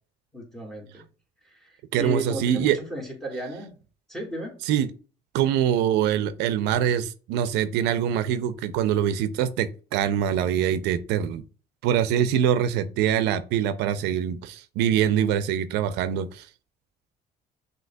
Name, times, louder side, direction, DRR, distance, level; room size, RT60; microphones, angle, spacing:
voice 1, 0.3-1.0 1.4-1.7 2.0-3.7 4.1-4.5, right 1 dB, 5° left, 1.6 m, -34 dB
voice 2, 1.9-2.8 4.7-4.9 5.3-11.4 11.8-16.5, right 9 dB, 90° right, 0.4 m, -24 dB
6.1 x 2.7 x 2.2 m
cardioid pair, 110°, 17 cm